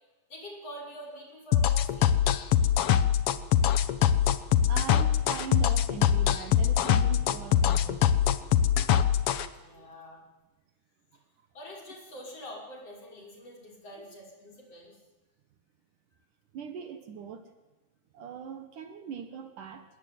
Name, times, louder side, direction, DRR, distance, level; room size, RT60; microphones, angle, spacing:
voice 1, 0.3-2.2 9.6-10.2 11.5-15.0, equal, 40° left, -1 dB, 6.9 m, -45 dB
sound 1, 1.5-9.5, left 9 dB, 85° left, 1.2 m, -23 dB
voice 2, 4.7-9.0 9.7-9.9 16.5-17.5 18.1-19.9, right 7 dB, 65° right, 8 dB, 3.0 m, -41 dB
26.0 x 21.5 x 9.5 m, 1.1 s
omnidirectional pair, 4.2 m